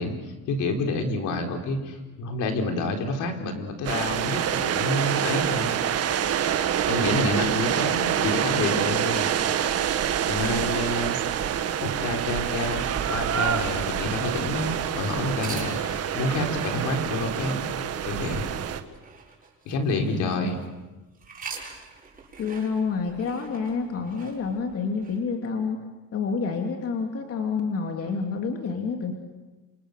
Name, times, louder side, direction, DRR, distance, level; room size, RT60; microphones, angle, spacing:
voice 1, 0.0-5.7 6.9-9.3 10.3-11.1 11.8-17.7 18.0-18.4 19.6-20.6, left 2 dB, 75° left, 4 dB, 4.4 m, -28 dB
sound 1, 3.8-18.8, right 9 dB, 50° right, 1.7 m, -26 dB
sound 2, 15.4-20.7 21.2-25.2, right 5 dB, 25° right, 7.2 m, -44 dB
voice 2, 22.4-25.8 26.1-29.1, left 5 dB, 50° left, 3 dB, 3.1 m, -28 dB
28.0 x 27.0 x 6.8 m, 1.2 s
cardioid pair, 125°, 31 cm